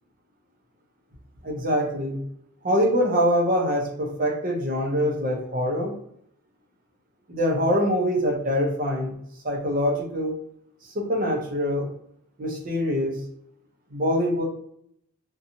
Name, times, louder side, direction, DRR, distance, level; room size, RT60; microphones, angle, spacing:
voice 1, 1.4-2.2 2.6-5.9 7.3-9.2 9.4-10.3 10.9-11.9 12.4-13.2 13.9-14.4, equal, 40° right, 1 dB, 0.7 m, -24 dB
2.7 x 2.3 x 2.6 m, 0.70 s
head